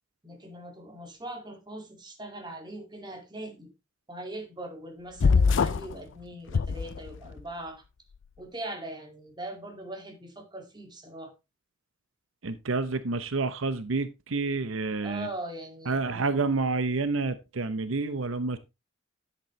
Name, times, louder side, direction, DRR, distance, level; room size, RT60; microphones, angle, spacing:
voice 1, 0.2-3.7 4.1-7.8 8.4-11.3 15.0-16.0, right 1 dB, 20° right, 2.4 m, -41 dB
sound 1, 5.2-5.9 6.5-7.4, left 5 dB, 65° left, 0.4 m, -23 dB
voice 2, 12.4-15.3 15.9-18.6, right 3 dB, 80° right, 0.8 m, -29 dB
10.5 x 8.3 x 3.2 m
head